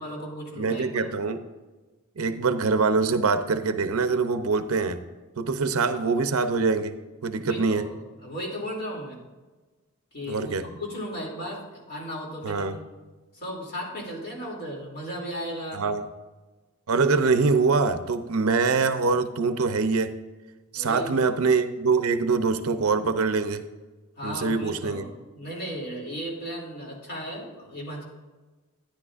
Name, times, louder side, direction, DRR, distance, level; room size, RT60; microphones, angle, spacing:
voice 1, 0.0-1.1 7.4-9.2 10.1-12.9 13.3-15.8 20.7-21.3 24.2-25.0 25.3-28.0, equal, 45° left, -2 dB, 2.8 m, -35 dB
voice 2, 0.6-1.4 2.2-5.0 5.4-7.0 7.2-7.8 10.3-10.6 12.4-12.8 15.7-16.0 16.9-20.1 20.7-23.6 24.2-25.0, right 4 dB, 75° right, 10 dB, 0.6 m, -24 dB
12.0 x 10.5 x 2.5 m, 1.2 s
head